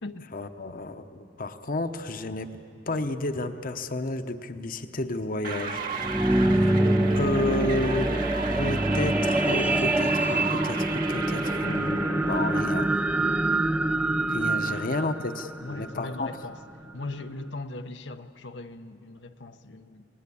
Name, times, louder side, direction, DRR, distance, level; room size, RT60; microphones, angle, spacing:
voice 1, 0.3-2.6 2.9-6.8 7.1-8.1 8.5-12.9 14.3-16.3, left 2 dB, 50° left, 8 dB, 0.9 m, -31 dB
sound 1, 5.4-12.6, right 3 dB, 50° right, 1.8 m, -33 dB
sound 2, 5.8-16.3 16.9-17.0, right 1 dB, 10° right, 0.5 m, -25 dB
voice 2, 7.3-8.0 14.7-15.1 15.6-16.6 16.9-20.1, left 2 dB, 90° left, 6 dB, 0.9 m, -39 dB
30.0 x 19.5 x 8.5 m, 2.7 s
head